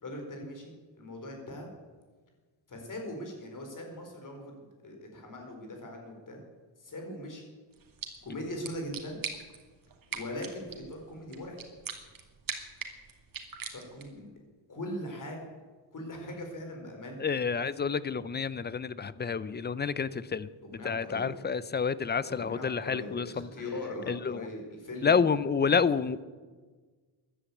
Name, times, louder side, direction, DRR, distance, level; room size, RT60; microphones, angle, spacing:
voice 1, 0.0-1.7 2.7-6.4 6.8-7.4 8.2-9.2 10.1-11.6 13.7-14.3 14.7-15.4 15.9-17.2 20.7-21.3 22.2-25.3, left 1 dB, 40° left, 3 dB, 4.4 m, -40 dB
sound 1, 7.7-14.2, right 6 dB, 45° right, 2.3 m, -43 dB
voice 2, 17.2-20.5 20.8-23.5 24.1-24.5 25.0-26.2, left 5 dB, 25° left, 17 dB, 0.5 m, -29 dB
14.5 x 11.5 x 8.5 m, 1.4 s
cardioid pair, 130°, 46 cm